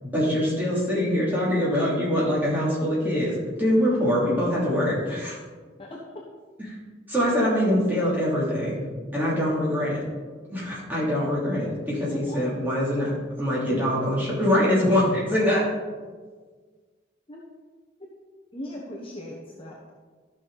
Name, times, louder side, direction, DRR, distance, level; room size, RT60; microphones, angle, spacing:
voice 1, 0.0-5.4 7.1-8.8 9.1-10.0 10.5-13.1 13.4-15.7, equal, 10° right, -8 dB, 3.0 m, -24 dB
voice 2, 5.8-6.2 12.1-12.4 13.7-14.3 17.3-17.4 18.0-18.1 18.5-19.9, left 1 dB, 30° left, -3 dB, 1.1 m, -39 dB
13.5 x 5.9 x 4.0 m, 1.5 s
head